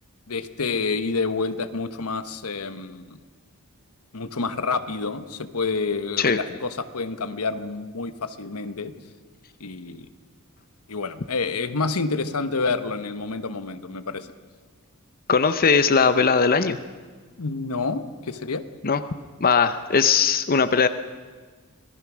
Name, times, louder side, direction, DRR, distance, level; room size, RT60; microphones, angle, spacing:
voice 1, 0.3-3.2 4.1-8.9 9.6-10.1 10.9-14.3 17.4-18.6, left 4 dB, 85° left, 11 dB, 1.2 m, -28 dB
voice 2, 15.3-16.8 18.8-19.0 19.4-20.9, left 5 dB, 40° left, 11 dB, 0.7 m, -19 dB
25.5 x 18.0 x 6.2 m, 1.5 s
head